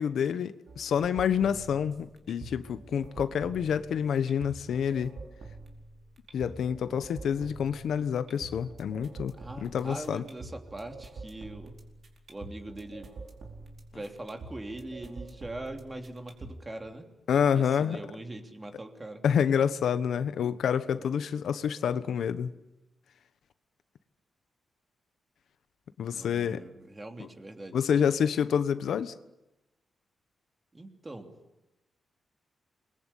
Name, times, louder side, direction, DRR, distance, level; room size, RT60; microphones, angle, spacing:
voice 1, 0.0-5.1 6.3-10.2 17.3-18.0 19.2-22.5 26.0-26.6 27.7-29.1, left 8 dB, 80° left, 1.2 m, -28 dB
sound 1, 0.7-16.7, right 3 dB, 50° right, 4.6 m, -47 dB
voice 2, 9.4-11.7 12.3-13.1 13.9-17.1 17.5-19.2 26.1-28.1 30.7-31.3, right 2 dB, 20° right, 3.1 m, -42 dB
28.5 x 22.0 x 8.4 m
wide cardioid pair, 140°, 0 cm